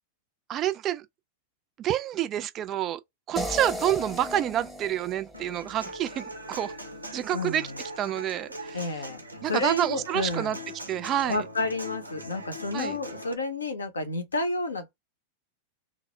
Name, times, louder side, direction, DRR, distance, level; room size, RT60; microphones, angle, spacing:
voice 1, 0.5-1.1 1.8-3.0 3.3-6.7 7.1-7.7 8.0-9.1 9.4-10.6 10.9-11.4 12.7-13.0, right 11 dB, 30° right, 0.3 m, -28 dB
sound 1, 3.4-6.4, equal, 5° left, 0.7 m, -36 dB
Human voice / Acoustic guitar, 5.3-13.3, equal, 90° right, 0.6 m, -41 dB
voice 2, 7.3-7.8 8.7-9.2 9.5-10.6 11.3-14.9, left 2 dB, 75° left, 0.6 m, -30 dB
2.0 x 2.0 x 3.0 m
figure-of-eight pair, 90°, 0 cm